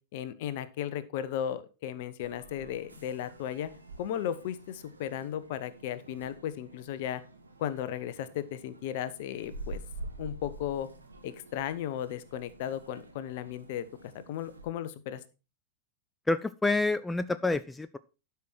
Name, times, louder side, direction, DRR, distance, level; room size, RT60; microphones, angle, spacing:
voice 1, 0.1-3.7 4.0-7.2 7.6-9.8 10.2-10.9 11.2-15.2, left 10 dB, 50° left, 15 dB, 1.0 m, -35 dB
sound 1, 2.2-14.7, right 2 dB, 80° right, 1.6 m, -48 dB
voice 2, 16.3-18.0, left 2 dB, 10° left, 14 dB, 0.4 m, -28 dB
12.0 x 5.9 x 4.6 m, 0.31 s
figure-of-eight pair, 90°, 0 cm